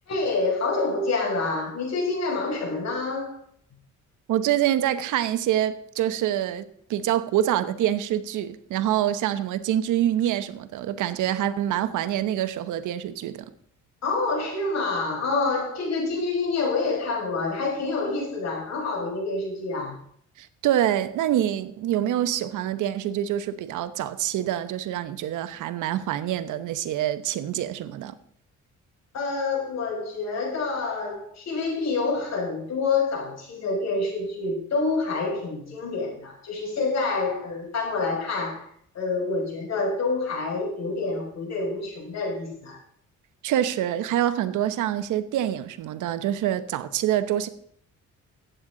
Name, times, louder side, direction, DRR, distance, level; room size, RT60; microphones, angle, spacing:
voice 1, 0.1-3.4 14.0-20.0 29.1-38.7 38.9-42.8, left 3 dB, 60° left, 6.2 m, -27 dB
voice 2, 4.3-13.5 20.4-28.1 43.4-47.5, right 11 dB, 80° right, 0.9 m, -26 dB
14.5 x 9.2 x 3.9 m
cardioid pair, 90°, 30 cm